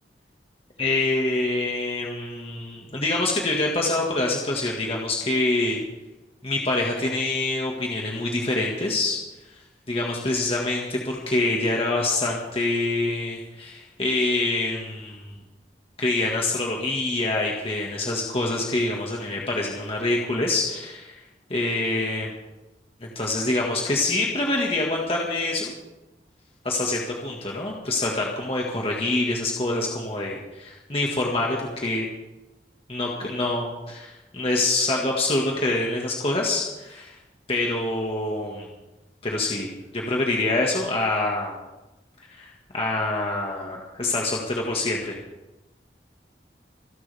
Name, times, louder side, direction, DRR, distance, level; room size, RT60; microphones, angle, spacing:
voice 1, 0.8-5.8 6.4-9.2 9.9-15.3 16.0-21.2 21.5-22.3 23.0-25.7 26.6-32.1 32.9-37.2 37.5-38.7 39.2-39.7 39.9-41.6 42.3-45.2, left 2 dB, 35° left, -2 dB, 1.8 m, -26 dB
27.0 x 11.0 x 3.5 m, 1.0 s
head